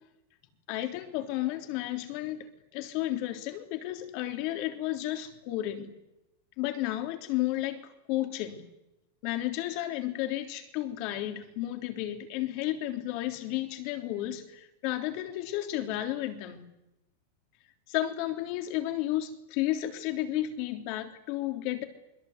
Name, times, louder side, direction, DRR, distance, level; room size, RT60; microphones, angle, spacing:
voice 1, 0.7-5.9 6.6-8.6 9.2-16.6 17.9-21.8, left 14 dB, 50° left, 3.3 m, -32 dB
29.0 x 21.5 x 8.1 m
supercardioid pair, 130°, 0 cm